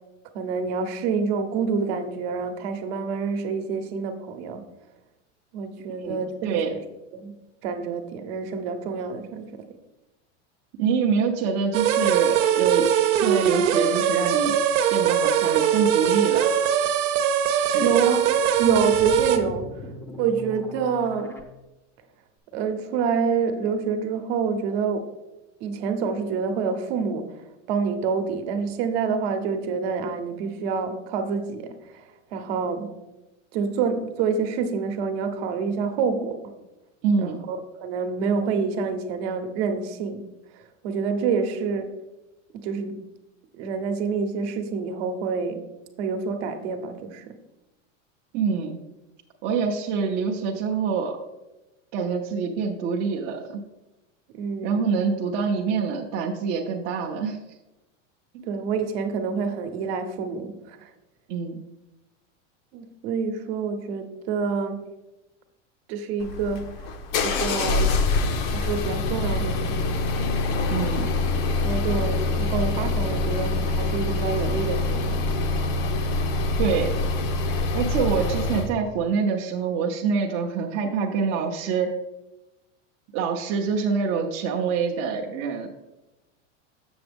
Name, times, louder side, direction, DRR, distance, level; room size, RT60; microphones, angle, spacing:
voice 1, 0.3-4.6 5.5-6.8 7.1-7.4 7.6-9.7 17.8-19.7 20.2-21.4 22.5-25.1 25.6-27.4 27.7-32.0 32.3-32.9 33.5-36.4 37.2-40.2 40.5-41.9 42.5-43.0 43.5-45.6 46.0-47.2 54.3-54.9 58.4-60.9 62.7-64.8 65.9-66.7 67.2-67.9 68.5-70.0 71.6-75.3, right 5 dB, 55° right, 7 dB, 1.0 m, -27 dB
voice 2, 6.0-6.7 10.8-16.5 17.7-17.9 37.0-37.4 48.3-48.8 49.4-51.2 51.9-53.6 54.6-57.4 58.3-58.4 61.3-61.6 70.7-71.1 76.6-76.9 77.7-81.9 83.1-85.7, right 5 dB, 35° right, 0 dB, 0.6 m, -26 dB
sound 1, 11.7-19.4, right 9 dB, 80° right, 0.9 m, -21 dB
sound 2, 18.1-21.4, left 1 dB, 5° left, 0.5 m, -40 dB
sound 3, 66.2-78.7, left 2 dB, 50° left, 0.7 m, -25 dB
7.1 x 6.9 x 3.4 m, 1.0 s
supercardioid pair, 150°, 37 cm